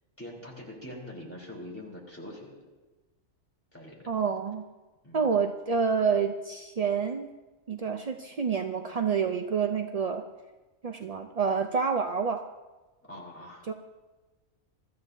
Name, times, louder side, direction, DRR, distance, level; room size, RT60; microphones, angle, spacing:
voice 1, 0.2-2.6 3.7-4.2 5.0-5.3 13.0-13.6, left 1 dB, 10° left, -4 dB, 3.4 m, -44 dB
voice 2, 4.1-4.6 5.1-7.3 7.7-10.2 10.8-12.4 13.7-13.8, right 6 dB, 60° right, 5 dB, 0.4 m, -28 dB
23.5 x 13.5 x 2.7 m, 1.2 s
omnidirectional pair, 1.4 m